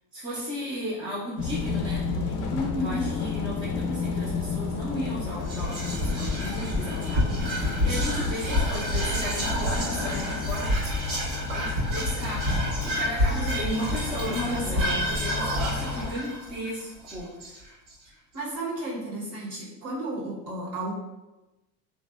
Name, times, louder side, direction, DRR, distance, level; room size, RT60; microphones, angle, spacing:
voice 1, 0.1-10.7 11.5-17.7, equal, 10° right, -7 dB, 0.3 m, -35 dB
sound 1, 1.4-16.1, left 5 dB, 55° left, 0.5 m, -32 dB
voice 2, 2.5-3.0 14.2-15.1 18.3-20.9, equal, 35° right, -5 dB, 1.0 m, -32 dB
Whispering, 5.4-17.9, equal, 70° right, 1.2 m, -29 dB
2.6 x 2.1 x 2.4 m, 1.0 s
supercardioid pair, 105°, 45 cm